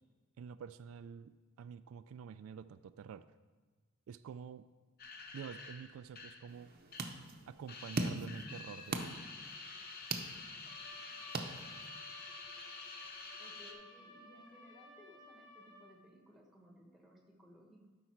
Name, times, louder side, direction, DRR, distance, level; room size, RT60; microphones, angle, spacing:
voice 1, 0.4-3.3 4.1-4.7 5.3-6.7 7.4-9.2, right 7 dB, 80° right, 14 dB, 0.3 m, -48 dB
sound 1, 5.0-7.4 7.7-13.7, left 4 dB, 50° left, 0.9 m, -49 dB
sound 2, 6.5-12.1, right 3 dB, 50° right, 0.7 m, -42 dB
Trumpet, 10.7-16.0, equal, 20° left, 1.5 m, -56 dB
voice 2, 13.4-17.9, equal, ahead, 1 dB, 1.2 m, -60 dB
12.0 x 4.9 x 4.5 m, 1.4 s
head